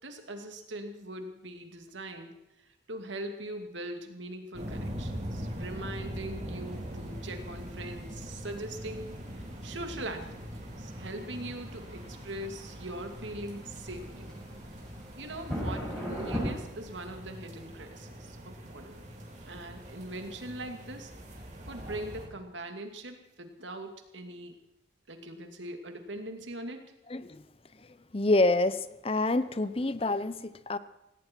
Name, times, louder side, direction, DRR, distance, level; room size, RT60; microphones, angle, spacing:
voice 1, 0.0-2.4 2.9-9.1 9.6-14.3 15.2-19.0 19.5-21.1 21.7-24.6 25.1-26.8, right 1 dB, 80° right, 5 dB, 2.4 m, -41 dB
sound 1, 4.5-22.3, equal, 40° right, 3.4 m, -42 dB
sound 2, 6.7-16.5, equal, 5° left, 7.2 m, -40 dB
voice 2, 27.1-27.4 28.1-30.8, left 2 dB, 30° left, 14 dB, 0.6 m, -27 dB
18.0 x 17.0 x 4.6 m, 0.92 s
head